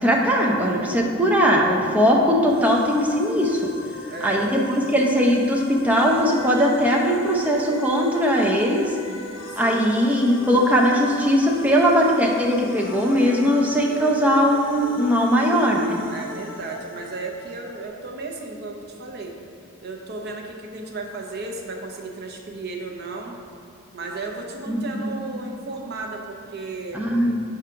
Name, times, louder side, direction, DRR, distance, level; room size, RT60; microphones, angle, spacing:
voice 1, 0.0-3.7 4.2-8.9 9.6-16.0 24.7-24.8 26.9-27.4, equal, 5° right, -2 dB, 0.6 m, -19 dB
sound 1, 2.5-17.9, left 3 dB, 60° left, 0.5 m, -39 dB
voice 2, 4.1-4.5 9.6-10.0 16.1-19.4 19.8-23.4 23.9-27.0, right 3 dB, 50° right, 2 dB, 0.7 m, -34 dB
4.8 x 3.7 x 5.6 m, 2.3 s
head